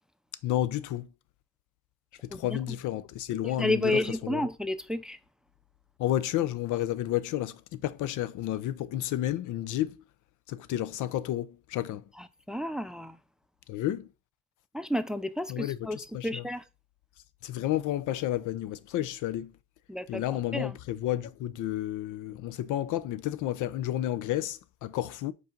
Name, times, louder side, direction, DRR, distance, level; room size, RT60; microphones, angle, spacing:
voice 1, 0.4-1.1 2.2-4.4 6.0-9.9 10.5-12.0 13.7-14.1 15.5-16.4 17.4-19.5 20.1-25.3, left 13 dB, 85° left, 0.5 m, -31 dB
voice 2, 3.4-5.2 12.2-13.2 14.7-16.6 19.9-20.8, left 1 dB, ahead, 0.4 m, -31 dB
5.3 x 4.0 x 5.1 m
cardioid pair, 90°, 30 cm